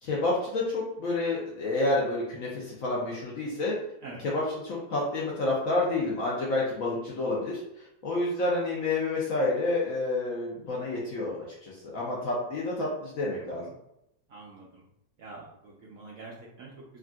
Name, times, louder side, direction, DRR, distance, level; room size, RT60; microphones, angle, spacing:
voice 1, 0.0-3.8 4.2-7.6 8.0-13.7, left 2 dB, 65° left, -4 dB, 0.8 m, -29 dB
voice 2, 14.3-14.8 15.2-17.0, right 3 dB, 70° right, -4 dB, 0.8 m, -46 dB
3.5 x 2.5 x 2.3 m, 0.82 s
omnidirectional pair, 1.9 m